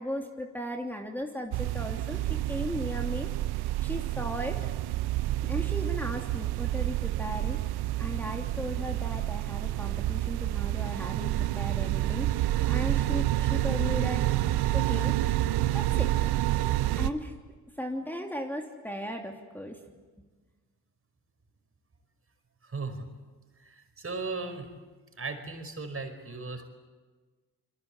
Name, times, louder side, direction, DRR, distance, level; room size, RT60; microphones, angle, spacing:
voice 1, 0.0-3.3 3.6-4.6 5.4-14.3 14.7-15.2 15.7-16.1 17.0-17.3 17.8-19.8, equal, 5° left, 2 dB, 3.0 m, -36 dB
sound 1, 1.5-17.1, right 15 dB, 70° right, 1.1 m, -28 dB
voice 2, 22.6-23.1 23.6-24.7 25.2-26.6, right 3 dB, 35° right, 6 dB, 5.2 m, -37 dB
29.0 x 22.0 x 8.5 m, 1.4 s
hypercardioid pair, 50°, 39 cm